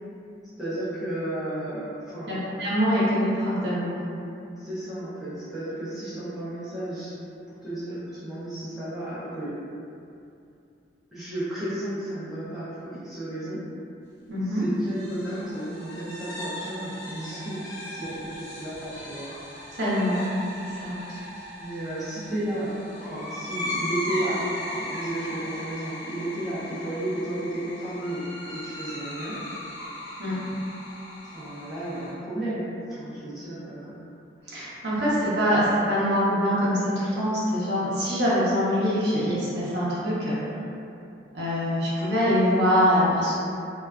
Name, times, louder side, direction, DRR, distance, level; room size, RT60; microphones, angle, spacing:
voice 1, 0.6-2.4 4.6-7.2 7.5-9.6 11.1-13.6 14.4-19.3 21.6-29.4 31.2-34.0, right 1 dB, ahead, -13 dB, 0.7 m, -33 dB
voice 2, 2.3-3.9 14.3-14.6 19.7-20.2 20.6-21.0 30.2-30.4 34.5-40.4 41.3-43.3, equal, 60° right, -9 dB, 0.7 m, -24 dB
sound 1, 14.8-32.1, left 1 dB, 55° left, 0.7 m, -37 dB
2.4 x 2.2 x 2.3 m, 2.6 s
head